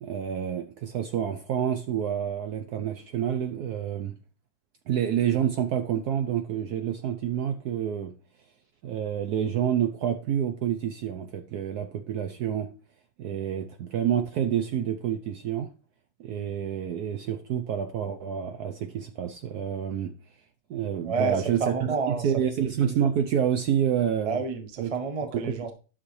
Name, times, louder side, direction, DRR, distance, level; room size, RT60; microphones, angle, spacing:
voice 1, 0.0-4.1 4.9-8.1 8.8-12.7 13.2-15.7 16.2-20.1 20.7-24.4 24.8-24.9 25.3-25.5, right 9 dB, 70° right, 0.9 m, -28 dB
voice 2, 21.0-22.3 24.2-25.7, right 4 dB, 50° right, 0.4 m, -29 dB
9.6 x 6.1 x 3.1 m
omnidirectional pair, 2.2 m